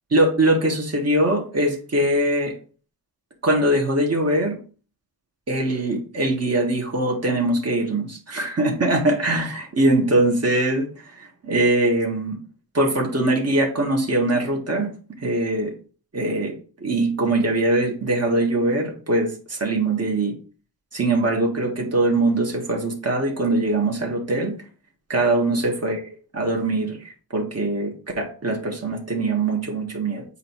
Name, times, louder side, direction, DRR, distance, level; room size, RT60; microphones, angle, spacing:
voice 1, 0.1-2.5 3.4-4.6 5.5-10.9 11.2-12.4 12.7-14.9 15.2-15.7 16.1-20.3 20.9-24.6 25.1-26.0 26.3-30.2, right 2 dB, 40° right, 2 dB, 1.7 m, -22 dB
8.0 x 2.8 x 4.6 m, 0.39 s
wide cardioid pair, 95°, 37 cm